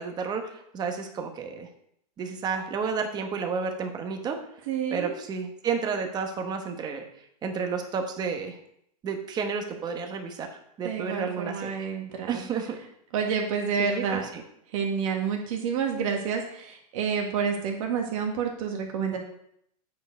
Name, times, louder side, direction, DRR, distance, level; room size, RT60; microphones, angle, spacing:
voice 1, 0.0-1.7 2.2-4.4 4.9-7.0 7.4-8.6 9.0-10.5 10.8-11.9 12.3-12.8 13.8-14.4, right 5 dB, 20° right, 4 dB, 1.0 m, -31 dB
voice 2, 4.7-5.1 10.8-12.4 13.1-14.2 14.7-19.2, right 6 dB, 55° right, 2 dB, 1.5 m, -29 dB
8.6 x 4.6 x 4.7 m, 0.72 s
supercardioid pair, 150°, 21 cm